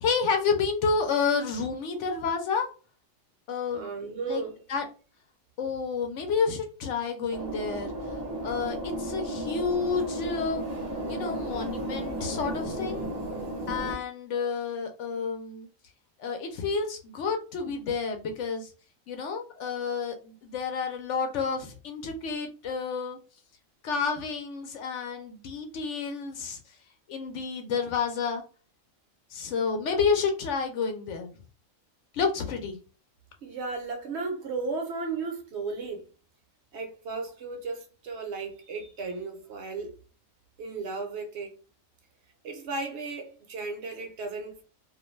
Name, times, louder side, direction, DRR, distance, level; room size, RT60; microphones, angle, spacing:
voice 1, 0.0-2.7 3.5-4.4 4.7-4.8 5.6-7.9 8.4-10.6 11.1-13.1 13.7-15.7 16.2-18.7 19.1-23.2 23.8-26.6 27.1-28.4 29.3-31.3 32.1-32.8, left 5 dB, 70° left, 0.8 m, -30 dB
voice 2, 3.7-4.5 33.4-36.0 36.7-39.9 40.6-41.6 42.4-44.6, right 4 dB, 60° right, 0.9 m, -35 dB
sound 1, 7.3-13.9, right 1 dB, 25° right, 0.7 m, -34 dB
2.5 x 2.1 x 3.0 m
omnidirectional pair, 1.4 m